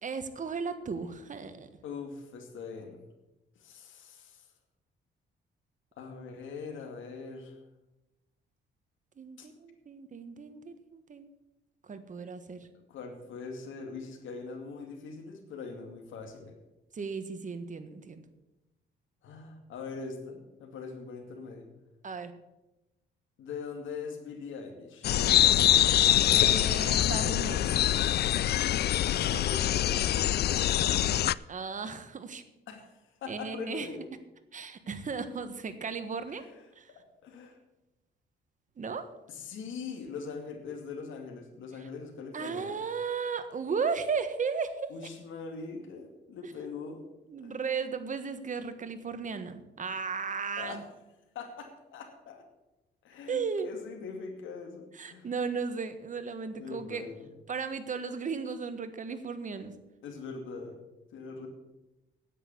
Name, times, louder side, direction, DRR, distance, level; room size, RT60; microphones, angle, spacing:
voice 1, 0.0-1.7 9.2-11.3 11.8-12.7 16.9-18.2 22.0-22.3 26.2-27.8 29.3-29.4 31.5-32.4 33.3-33.9 34.5-36.5 36.7-36.9 38.8-39.1 42.3-44.9 47.3-50.8 53.3-53.7 54.9-57.1 57.5-59.7, right 5 dB, 40° right, 10 dB, 1.4 m, -35 dB
voice 2, 1.8-3.0 3.6-4.5 6.0-7.6 9.4-9.5 12.7-16.6 19.2-21.7 23.4-25.1 29.4-31.0 32.7-34.0 36.4-36.5 36.9-37.6 39.3-42.8 44.9-47.0 47.4-47.5 50.6-50.8 51.3-52.4 53.0-55.3 56.6-57.3 60.0-60.8 61.1-61.5, left 5 dB, 75° left, 4 dB, 2.4 m, -42 dB
sound 1, 25.0-31.3, left 12 dB, 55° left, 0.4 m, -24 dB
10.0 x 8.3 x 8.2 m, 0.99 s
cardioid pair, 90°, 20 cm